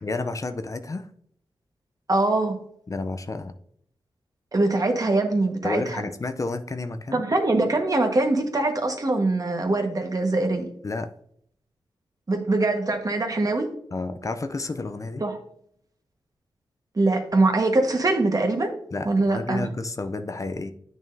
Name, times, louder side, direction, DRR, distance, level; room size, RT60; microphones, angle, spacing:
voice 1, 0.0-1.1 2.9-3.6 5.6-7.2 10.8-11.1 13.9-15.2 18.9-20.7, left 3 dB, 35° left, 9 dB, 0.5 m, -31 dB
voice 2, 2.1-2.6 4.5-5.8 7.1-10.7 12.3-13.7 15.2-15.4 16.9-18.7 19.0-19.7, right 2 dB, 40° right, 4 dB, 1.4 m, -23 dB
8.7 x 6.2 x 2.7 m, 0.68 s
cardioid pair, 50°, 9 cm